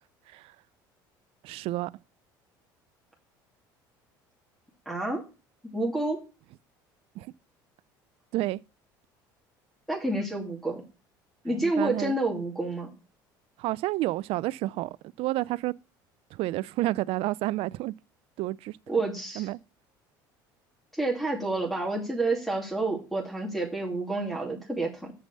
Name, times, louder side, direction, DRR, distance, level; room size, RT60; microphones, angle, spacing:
voice 1, 1.4-1.9 7.2-7.3 8.3-8.6 11.5-12.2 13.6-15.7 16.3-17.9 18.4-18.8 19.4-19.6, right 17 dB, 60° right, 0.4 m, -30 dB
voice 2, 4.9-5.2 5.6-6.2 9.9-10.8 11.4-12.9 18.9-19.5 20.9-25.1, right 2 dB, ahead, 2.6 m, -29 dB
6.9 x 5.9 x 6.6 m
hypercardioid pair, 70°, 11 cm